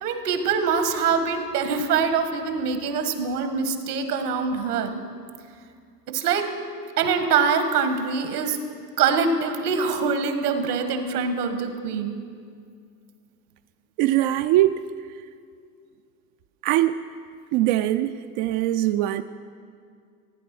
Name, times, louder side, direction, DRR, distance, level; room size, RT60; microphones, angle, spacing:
voice 1, 0.0-5.0 6.1-6.5 7.0-8.6 9.0-12.1, right 5 dB, 75° right, 8 dB, 1.7 m, -24 dB
voice 2, 14.0-14.8 16.6-17.0 17.5-19.2, right 14 dB, 45° right, 9 dB, 0.5 m, -21 dB
16.0 x 9.2 x 6.1 m, 2.2 s
hypercardioid pair, 85°, 46 cm